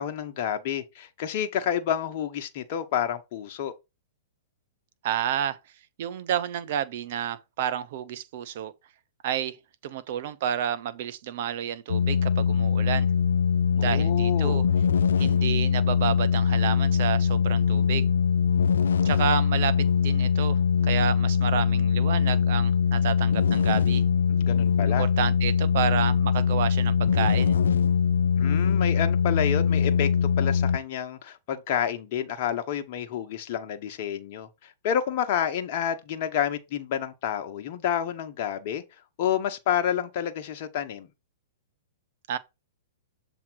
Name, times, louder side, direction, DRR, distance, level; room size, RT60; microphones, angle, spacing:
voice 1, 0.0-3.7 13.8-14.6 24.3-25.1 28.4-38.8 39.2-41.1, left 9 dB, 50° left, 1.0 m, -29 dB
voice 2, 5.0-5.6 6.0-8.7 9.2-9.6 9.8-13.1 13.7-14.6 15.2-18.1 19.0-24.0 25.0-27.6 42.3-42.4, right 9 dB, 55° right, 0.8 m, -30 dB
sound 1, 11.9-30.8, left 6 dB, 75° left, 0.5 m, -22 dB
7.2 x 3.0 x 4.7 m
figure-of-eight pair, 110°, 0 cm